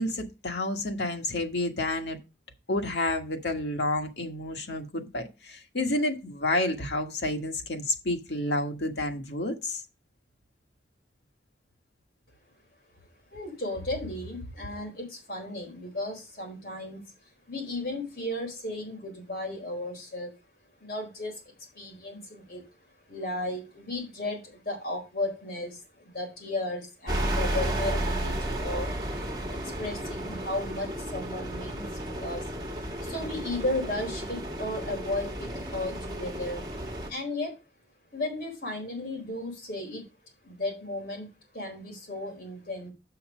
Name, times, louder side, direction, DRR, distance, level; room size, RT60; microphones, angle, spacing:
voice 1, 0.0-2.2 2.7-9.8, left 2 dB, 85° left, 1.6 m, -30 dB
voice 2, 13.3-17.1 17.5-20.3 20.8-21.4 21.7-22.6 23.1-28.9 29.5-32.5 33.0-36.6 37.1-37.6 38.1-40.1 40.4-41.3 41.5-42.9, left 1 dB, 55° left, 4.2 m, -35 dB
sound 1, 27.1-37.1, right 1 dB, 25° right, 1.8 m, -33 dB
7.6 x 5.7 x 5.0 m
head